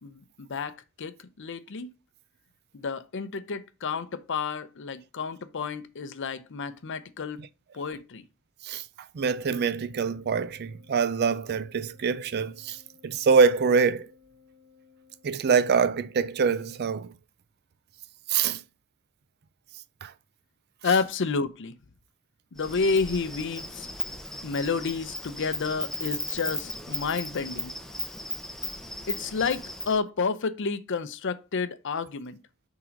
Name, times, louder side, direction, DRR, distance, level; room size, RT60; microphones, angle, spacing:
voice 1, 0.0-1.9 2.7-7.4 7.7-8.2 20.8-21.7 22.5-23.9 24.4-27.7 29.1-32.4, left 4 dB, 60° left, 0.6 m, -30 dB
voice 2, 9.1-14.1 15.2-17.1 18.3-18.6 20.0-20.1, right 5 dB, 50° right, 0.4 m, -25 dB
Organ, 9.4-16.0, left 6 dB, 75° right, 2.2 m, -59 dB
Insect, 22.6-30.0, left 1 dB, ahead, 0.7 m, -36 dB
5.8 x 3.8 x 5.1 m
head